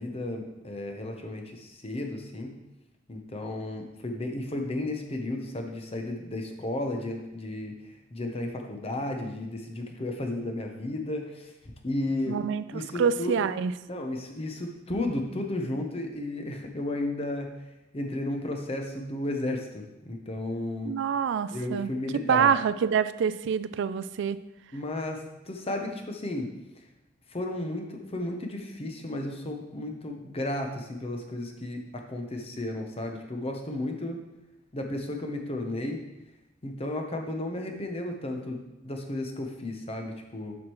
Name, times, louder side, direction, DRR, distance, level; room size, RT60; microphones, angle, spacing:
voice 1, 0.0-2.5 3.1-11.5 11.8-12.4 12.7-13.5 13.9-17.5 17.9-20.9 21.5-22.5 24.7-26.5 27.3-34.2 34.7-36.0 36.6-40.6, left 1 dB, 30° left, 3 dB, 0.8 m, -33 dB
voice 2, 12.3-13.7 20.9-21.9 22.2-24.4, right 7 dB, 65° right, 14 dB, 0.3 m, -26 dB
7.2 x 6.3 x 3.1 m, 0.98 s
head